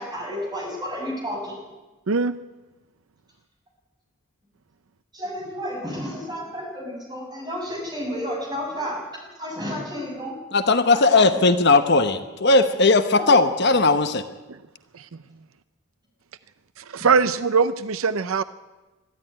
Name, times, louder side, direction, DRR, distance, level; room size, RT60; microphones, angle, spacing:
voice 1, 0.0-1.5 5.1-9.0 9.4-10.3 10.9-11.2 13.1-13.4, equal, 20° right, -1 dB, 6.7 m, -31 dB
voice 2, 2.1-2.4 14.9-15.1 16.8-18.4, right 5 dB, 70° right, 13 dB, 0.6 m, -21 dB
voice 3, 10.5-14.2, left 3 dB, 50° left, 9 dB, 1.0 m, -18 dB
22.0 x 13.0 x 9.9 m, 1.1 s
head